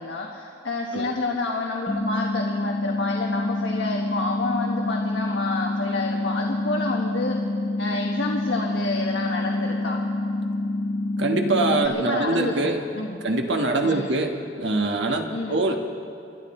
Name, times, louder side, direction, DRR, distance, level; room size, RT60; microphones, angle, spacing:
voice 1, 0.0-7.4 7.8-10.0 11.8-13.2 13.8-14.1 15.3-15.6, left 2 dB, 75° left, 0 dB, 1.3 m, -29 dB
sound 1, 1.9-11.9, left 2 dB, 30° left, 0.8 m, -27 dB
voice 2, 11.2-12.8 13.2-15.7, right 2 dB, 75° right, 3 dB, 1.5 m, -23 dB
27.5 x 11.5 x 4.3 m, 2.6 s
head